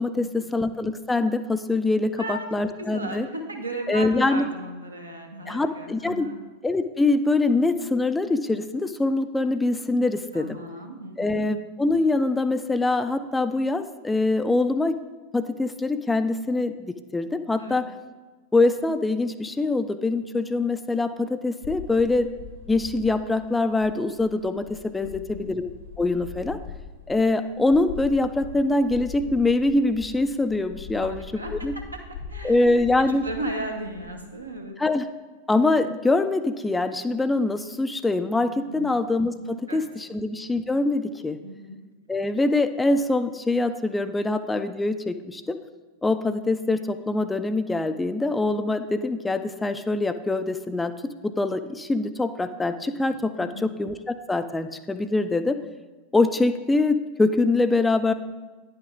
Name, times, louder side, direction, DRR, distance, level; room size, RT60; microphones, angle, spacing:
voice 1, 0.0-3.3 3.9-4.5 5.5-6.3 6.6-10.6 11.2-14.9 15.3-17.9 18.5-22.3 22.7-25.7 26.0-26.6 27.1-31.7 32.4-33.2 34.8-35.1 35.5-41.4 42.1-45.6 46.0-50.9 51.2-55.6 56.1-58.1, left 2 dB, 10° left, 10 dB, 0.4 m, -24 dB
voice 2, 2.8-6.4 10.3-11.4 17.6-17.8 25.0-25.5 30.9-31.7 32.3-34.8 38.7-38.9 39.7-39.8 41.4-41.8 53.4-53.7, right 1 dB, 85° right, 1 dB, 1.0 m, -36 dB
sound 1, 21.6-34.6, left 6 dB, 60° left, 1.0 m, -42 dB
9.9 x 5.7 x 3.5 m, 1.2 s
figure-of-eight pair, 90°, 0 cm